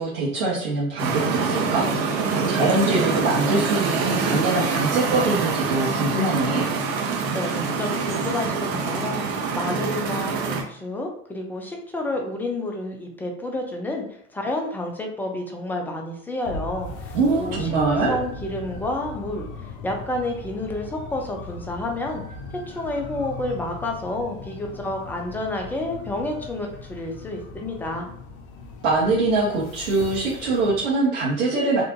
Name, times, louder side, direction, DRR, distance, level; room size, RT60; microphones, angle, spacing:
voice 1, 0.0-1.9 2.5-6.7 17.1-18.1 28.8-31.8, right 2 dB, 70° right, -7 dB, 1.0 m, -23 dB
sound 1, 1.0-10.6, right 5 dB, 45° right, 0.9 m, -25 dB
voice 2, 7.3-14.0 14.3-19.5 19.8-22.2 22.7-28.1, left 1 dB, 5° left, 2 dB, 0.4 m, -30 dB
sound 2, 16.4-30.9, left 3 dB, 45° left, 0.6 m, -38 dB
3.6 x 2.5 x 2.5 m, 0.66 s
figure-of-eight pair, 80°, 42 cm